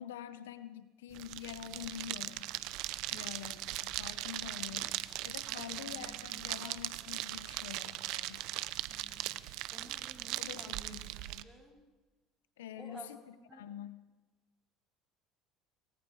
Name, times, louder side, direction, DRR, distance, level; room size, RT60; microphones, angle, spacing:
voice 1, 0.0-2.5 3.1-5.0 5.2-8.4 10.4-11.1 12.6-14.0, left 10 dB, 90° left, 12 dB, 1.2 m, -46 dB
sound 1, 1.1-11.4, right 17 dB, 70° right, 1.0 m, -39 dB
voice 2, 3.1-3.7 5.5-6.8 8.9-9.3 9.7-11.8 12.8-13.1 13.5-13.7, right 1 dB, 10° right, 2 dB, 7.9 m, -54 dB
27.5 x 24.5 x 5.0 m, 1.2 s
supercardioid pair, 85°, 0 cm